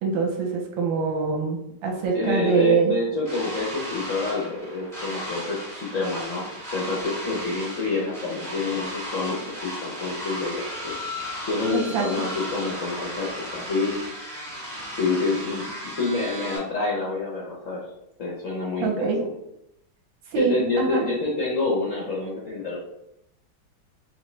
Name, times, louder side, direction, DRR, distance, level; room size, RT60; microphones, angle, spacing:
voice 1, 0.0-2.9 11.7-12.3 18.8-19.2 20.3-21.1, right 5 dB, 70° right, 0 dB, 1.3 m, -24 dB
voice 2, 2.1-10.9 11.5-13.9 15.0-17.8 18.2-18.9 19.2-19.3 20.4-22.8, left 3 dB, 75° left, -4 dB, 0.7 m, -27 dB
sound 1, 3.2-16.6, equal, ahead, 0.6 m, -35 dB
3.6 x 3.1 x 3.1 m, 0.82 s
omnidirectional pair, 2.4 m